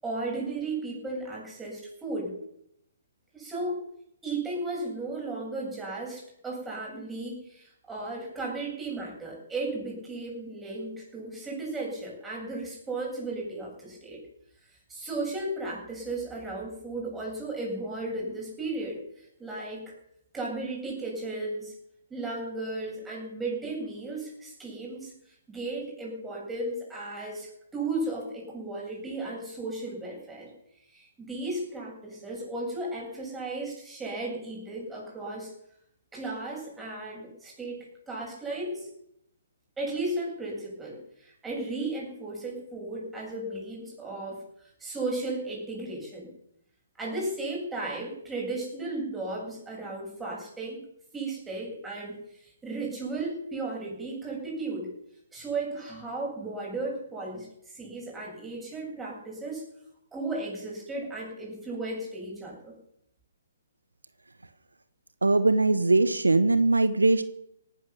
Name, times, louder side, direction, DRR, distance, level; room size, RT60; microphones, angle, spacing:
voice 1, 0.0-2.3 3.3-3.8 4.2-14.2 14.9-19.8 20.3-21.7 22.1-30.5 30.9-35.5 36.1-38.9 39.8-46.3 47.0-50.8 51.1-54.9 55.3-59.6 60.1-62.7, right 2 dB, 10° right, -2 dB, 7.8 m, -35 dB
voice 2, 65.2-67.2, right 2 dB, 85° right, 13 dB, 1.1 m, -21 dB
17.5 x 11.5 x 7.1 m, 0.76 s
figure-of-eight pair, 135°, 0 cm